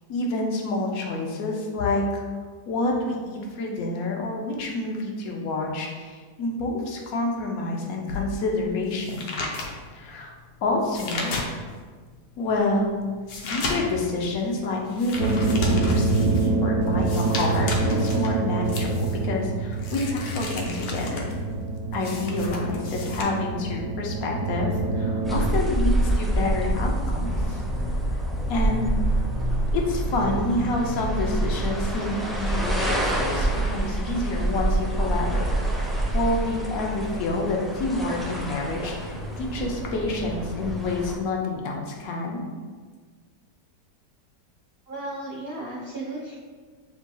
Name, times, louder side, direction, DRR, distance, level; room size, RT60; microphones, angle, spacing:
voice 1, 0.1-2.2 2.7-9.3 9.9-10.3 10.6-11.3 12.4-12.9 13.4-21.3 21.9-27.6 28.5-29.2 29.7-35.5 36.1-42.4, left 2 dB, 65° left, -1 dB, 1.0 m, -28 dB
sound 1, 8.1-11.9 12.4-23.2, left 3 dB, 80° left, 1.3 m, -35 dB
sound 2, 15.1-25.4, right 3 dB, 55° right, 1.5 m, -26 dB
sound 3, 25.2-41.2, right 1 dB, ahead, 0.4 m, -26 dB
voice 2, 44.9-46.4, right 2 dB, 90° right, -4 dB, 0.5 m, -34 dB
7.1 x 2.7 x 2.3 m, 1.5 s
omnidirectional pair, 1.8 m